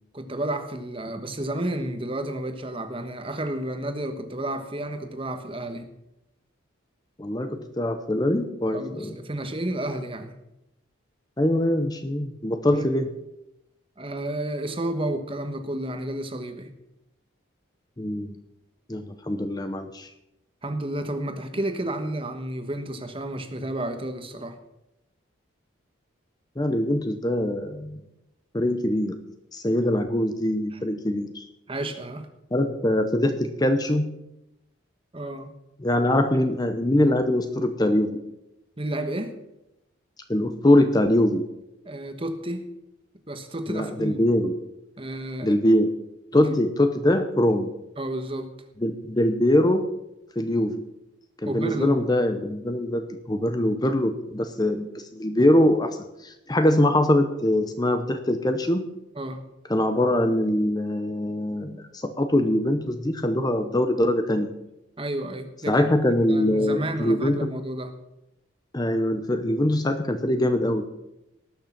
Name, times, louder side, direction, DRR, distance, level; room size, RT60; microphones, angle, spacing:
voice 1, 0.1-5.9 8.7-10.4 12.7-12.8 14.0-16.7 20.6-24.6 30.7-30.8 31.7-32.3 35.1-35.5 38.8-39.4 41.8-42.7 43.3-44.2 45.0-45.5 46.4-46.5 48.0-48.5 51.4-52.0 59.1-59.4 65.0-65.9 66.3-67.9, right 1 dB, 25° right, 7 dB, 1.2 m, -31 dB
voice 2, 7.2-9.2 11.4-13.1 18.0-18.3 18.9-20.1 26.6-28.0 28.5-29.2 29.5-31.5 32.5-34.1 35.8-38.2 40.3-41.4 43.7-44.6 45.4-46.0 46.3-47.7 48.8-49.8 50.4-50.8 51.4-58.8 59.7-64.5 65.7-67.4 68.7-70.9, left 1 dB, 20° left, 8 dB, 0.7 m, -23 dB
19.0 x 6.6 x 5.9 m, 0.89 s
head